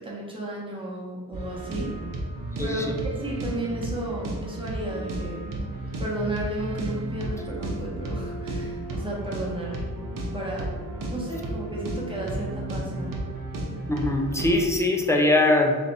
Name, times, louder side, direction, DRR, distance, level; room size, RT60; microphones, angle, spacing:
voice 1, 0.0-1.9 2.6-5.4 6.0-9.8 10.3-10.7 11.1-13.2, right 1 dB, 15° right, -4 dB, 1.0 m, -33 dB
sound 1, 1.3-14.7, right 1 dB, 55° right, 0.8 m, -33 dB
voice 2, 2.6-2.9 13.9-15.8, left 2 dB, 10° left, 2 dB, 0.4 m, -22 dB
3.3 x 2.5 x 4.0 m, 1.4 s
wide cardioid pair, 100°, 38 cm